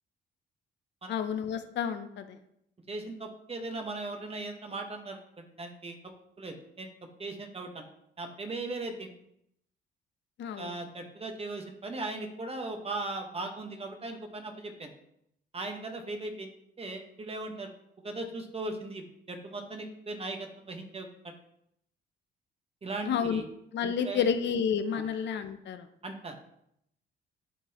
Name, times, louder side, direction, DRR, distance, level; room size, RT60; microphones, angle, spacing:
voice 1, 1.1-2.4 10.4-10.8 23.1-23.4 23.7-25.9, left 7 dB, 65° left, 8 dB, 0.6 m, -30 dB
voice 2, 2.9-6.9 7.2-7.9 8.2-9.1 10.6-14.9 15.5-16.5 16.8-17.7 18.0-21.3 22.8-23.4 23.8-24.2 24.9-25.0 26.0-26.3, right 2 dB, 30° right, 4 dB, 1.1 m, -38 dB
10.5 x 3.8 x 2.9 m, 0.75 s
cardioid pair, 90°, 20 cm